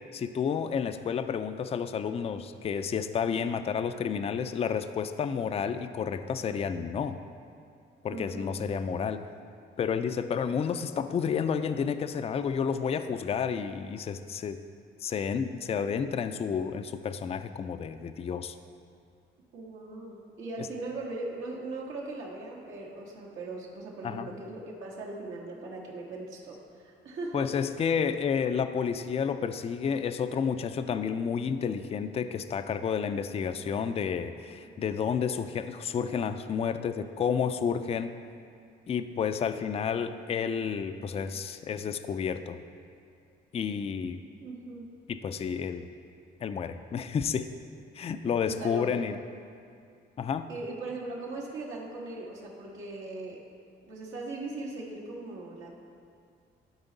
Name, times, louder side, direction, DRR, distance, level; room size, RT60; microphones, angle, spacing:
voice 1, 0.1-7.2 8.0-9.2 9.8-14.6 15.0-18.5 24.0-24.3 27.3-38.1 38.9-42.6 43.5-44.2 45.1-45.9 46.4-47.5 48.0-49.2 50.2-50.5, left 7 dB, 30° left, 10 dB, 0.3 m, -30 dB
voice 2, 8.1-8.5 19.5-27.5 44.4-44.9 48.5-49.0 50.5-53.4 53.9-55.8, right 2 dB, 80° right, -3 dB, 1.5 m, -39 dB
12.0 x 4.4 x 4.0 m, 2.3 s
cardioid pair, 90°, 20 cm